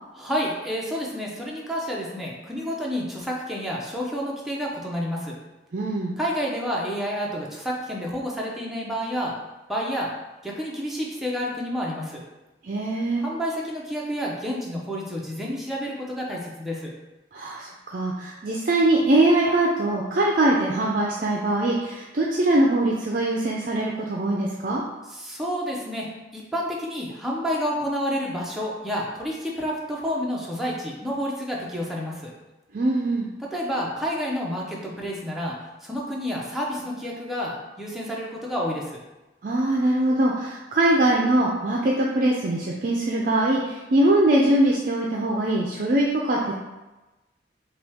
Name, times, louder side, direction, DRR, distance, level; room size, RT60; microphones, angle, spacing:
voice 1, 0.1-5.4 6.2-9.4 9.7-10.1 10.4-12.2 13.2-16.9 25.1-32.3 33.5-39.0, equal, ahead, -4 dB, 0.7 m, -29 dB
voice 2, 5.7-6.1 12.6-13.2 17.3-24.8 32.7-33.3 39.4-46.5, right 1 dB, 45° right, -2 dB, 0.4 m, -22 dB
5.8 x 2.3 x 3.4 m, 1.1 s
head